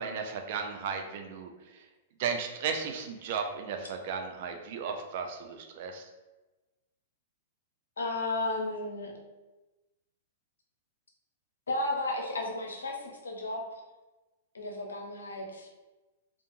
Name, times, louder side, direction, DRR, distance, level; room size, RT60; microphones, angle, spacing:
voice 1, 0.0-1.9 2.2-6.1, right 6 dB, 55° right, 5 dB, 0.4 m, -35 dB
voice 2, 8.0-9.1 11.7-13.6 14.5-15.7, left 2 dB, 90° left, 1 dB, 0.6 m, -33 dB
2.8 x 2.3 x 2.5 m, 1.1 s
hypercardioid pair, 120°, 0 cm